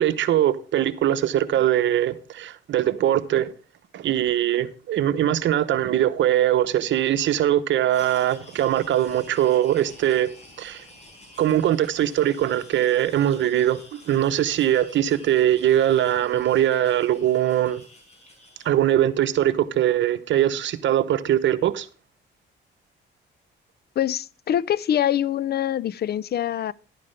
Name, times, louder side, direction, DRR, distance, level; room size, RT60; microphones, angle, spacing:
voice 1, 0.0-3.5 3.9-10.3 10.6-10.8 11.4-17.8 18.6-21.9, right 11 dB, 70° right, 0.9 m, -21 dB
sound 1, 7.9-18.7, left 1 dB, 35° left, 5.5 m, -49 dB
voice 2, 24.0-26.7, left 10 dB, 55° left, 0.5 m, -24 dB
11.5 x 9.5 x 3.3 m
cardioid pair, 90°, 20 cm